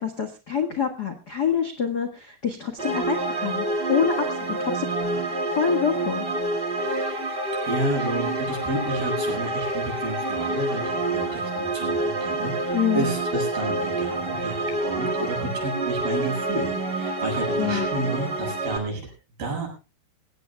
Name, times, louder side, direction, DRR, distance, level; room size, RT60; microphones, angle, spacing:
voice 1, 0.0-4.9 5.6-6.2 12.7-13.1 17.6-17.9, left 7 dB, 75° left, 7 dB, 0.9 m, -26 dB
sound 1, 2.8-18.8, right 2 dB, 35° right, 0.8 m, -27 dB
voice 2, 7.6-19.1 19.4-19.7, right 2 dB, 65° right, 2 dB, 8.6 m, -31 dB
22.5 x 18.0 x 2.3 m, 0.31 s
omnidirectional pair, 4.5 m